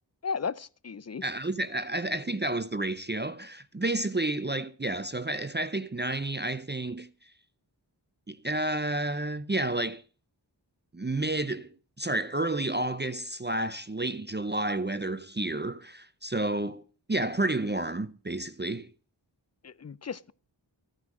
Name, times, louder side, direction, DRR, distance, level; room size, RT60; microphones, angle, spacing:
voice 1, 0.2-1.2 19.6-20.3, left 5 dB, 35° left, 0.6 m, -35 dB
voice 2, 1.2-7.1 8.3-10.0 10.9-16.8 17.1-18.9, right 2 dB, 25° right, 0.6 m, -30 dB
14.5 x 9.5 x 6.1 m
wide cardioid pair, 45°, 44 cm